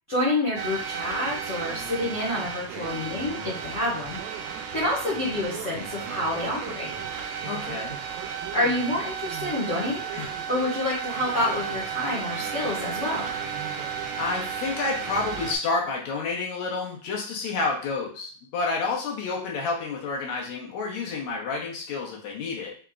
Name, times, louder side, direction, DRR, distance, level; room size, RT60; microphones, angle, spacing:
voice 1, 0.1-4.2 4.7-6.9 8.5-10.1 10.5-13.3, left 1 dB, 45° left, -7 dB, 0.9 m, -28 dB
sound 1, 0.6-15.6, right 7 dB, 90° right, 2.1 m, -33 dB
voice 2, 7.4-7.9 10.1-10.3 14.2-22.7, left 4 dB, 75° left, -2 dB, 2.2 m, -29 dB
5.0 x 3.6 x 2.3 m, 0.43 s
omnidirectional pair, 3.3 m